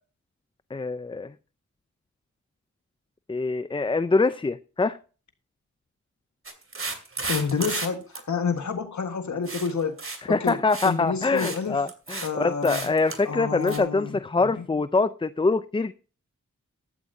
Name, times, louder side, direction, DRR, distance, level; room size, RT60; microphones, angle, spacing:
voice 1, 0.7-1.3 3.3-5.0 10.3-15.9, left 3 dB, 15° left, 0.5 m, -24 dB
sound 1, 6.5-7.9 8.2-8.3 9.5-9.7 10.0-10.2 10.5-10.9 11.2-11.6 11.9-12.3 12.6-13.2 13.7-13.8, right 3 dB, 45° right, 2.5 m, -33 dB
voice 2, 7.3-10.0 10.3-10.6 10.8-11.8 12.2-12.9 13.2-14.6, left 5 dB, 70° left, 1.5 m, -29 dB
14.5 x 12.5 x 2.7 m
wide cardioid pair, 85°, 30 cm